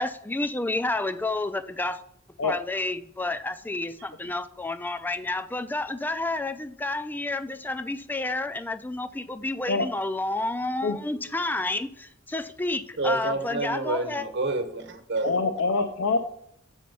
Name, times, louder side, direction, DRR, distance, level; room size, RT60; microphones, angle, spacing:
voice 1, 0.0-2.0 2.4-11.9 12.3-14.2, left 2 dB, 10° left, 0.3 m, -30 dB
voice 2, 13.0-15.3, right 2 dB, 60° right, 1.1 m, -29 dB
voice 3, 15.2-16.2, left 3 dB, 75° left, 0.5 m, -25 dB
7.2 x 4.2 x 5.4 m
head